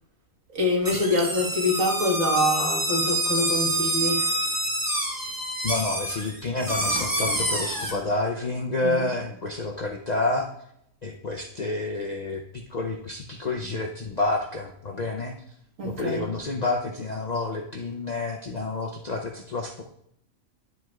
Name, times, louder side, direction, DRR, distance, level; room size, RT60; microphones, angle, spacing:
voice 1, 0.5-4.5 8.8-9.1 15.8-16.3, left 1 dB, 65° right, -1 dB, 1.9 m, -25 dB
sound 1, 0.8-7.9, right 1 dB, 15° right, 1.0 m, -27 dB
voice 2, 5.6-10.5 11.0-12.4 12.7-15.3 15.8-19.8, left 2 dB, 50° left, 1 dB, 0.5 m, -29 dB
10.5 x 7.7 x 2.3 m, 0.74 s
omnidirectional pair, 1.4 m